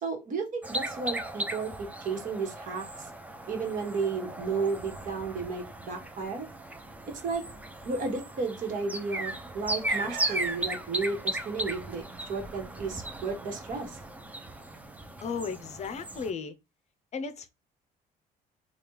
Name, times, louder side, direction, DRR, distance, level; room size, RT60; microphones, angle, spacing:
voice 1, 0.0-2.8 3.5-6.5 7.2-7.4 7.8-14.0, right 4 dB, 50° right, 1.3 m, -33 dB
sound 1, 0.6-16.3, right 1 dB, 10° right, 0.5 m, -37 dB
sound 2, 9.9-15.1, right 6 dB, 80° right, 0.8 m, -45 dB
voice 2, 15.2-16.5 17.1-17.5, left 5 dB, 40° left, 0.6 m, -35 dB
3.3 x 2.3 x 3.0 m
cardioid pair, 110°, 17 cm